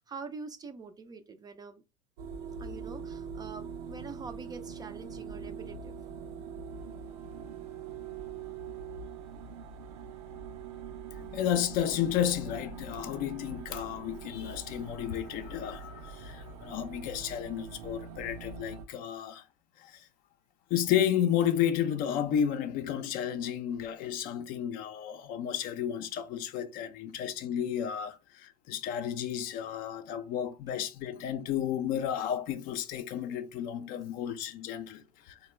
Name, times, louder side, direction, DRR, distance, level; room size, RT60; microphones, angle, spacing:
voice 1, 0.0-1.8 2.6-6.0, right 4 dB, 20° right, 0.4 m, -45 dB
sound 1, 2.2-18.9, right 6 dB, 70° right, 0.6 m, -43 dB
voice 2, 11.2-19.5 19.8-20.1 20.7-35.4, left 10 dB, 45° left, 0.5 m, -32 dB
3.5 x 2.2 x 3.1 m
hypercardioid pair, 85°, 20 cm